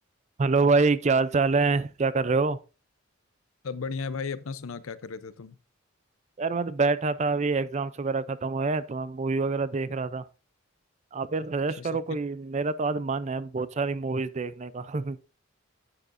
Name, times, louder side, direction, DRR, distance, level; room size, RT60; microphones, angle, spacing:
voice 1, 0.4-2.6 6.4-10.3 11.1-15.2, right 4 dB, 35° right, 0.4 m, -26 dB
voice 2, 3.6-5.6 11.8-12.0, left 5 dB, 75° left, 0.6 m, -35 dB
11.0 x 7.6 x 2.6 m
head